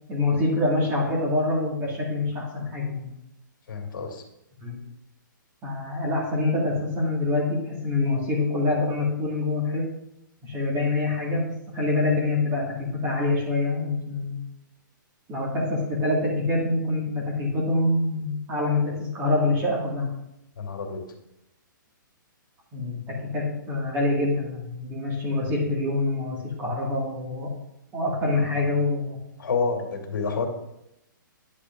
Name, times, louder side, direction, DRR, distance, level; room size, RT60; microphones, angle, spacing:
voice 1, 0.1-3.1 4.6-4.8 5.6-9.9 10.4-14.4 15.3-20.1 22.7-27.5 27.9-29.2, left 2 dB, 20° right, -4 dB, 1.9 m, -25 dB
voice 2, 3.7-4.2 20.6-21.0 28.3-28.6 29.4-30.5, left 5 dB, 75° left, 3 dB, 2.1 m, -29 dB
10.0 x 8.3 x 2.6 m, 0.83 s
hypercardioid pair, 155°, 11 cm